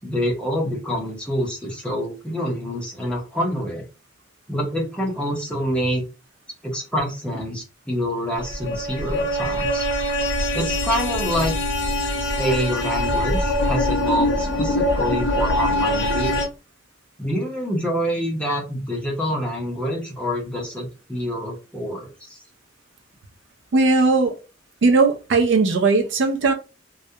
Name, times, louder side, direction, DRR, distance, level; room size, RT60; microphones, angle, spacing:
voice 1, 0.0-3.8 4.5-6.0 6.6-9.9 10.5-11.5 12.4-16.5 17.2-22.4, equal, 5° left, 0.7 m, -26 dB
sound 1, 8.3-16.5, left 1 dB, 60° left, 0.5 m, -23 dB
voice 2, 23.7-24.4 24.8-26.5, right 3 dB, 70° right, 0.4 m, -18 dB
2.3 x 2.0 x 2.7 m
head